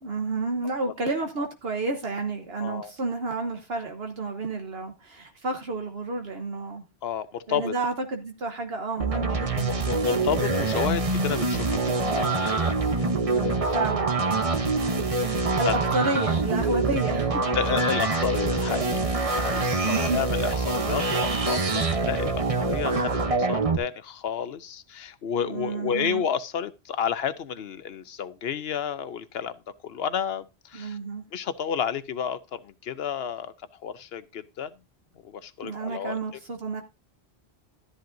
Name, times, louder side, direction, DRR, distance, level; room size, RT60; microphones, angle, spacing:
voice 1, 0.0-6.8 7.5-10.1 13.1-15.1 15.6-17.4 19.9-20.2 25.4-26.2 30.7-31.2 35.6-36.8, right 3 dB, 70° right, 1.3 m, -31 dB
voice 2, 2.6-2.9 7.0-7.7 9.9-13.1 13.3-13.8 15.3-15.7 17.5-29.5 29.8-31.0 31.3-34.7 35.2-36.2, left 8 dB, 70° left, 1.0 m, -31 dB
sound 1, 9.0-23.8, right 3 dB, 35° right, 0.9 m, -25 dB
12.5 x 10.5 x 2.6 m
omnidirectional pair, 1.1 m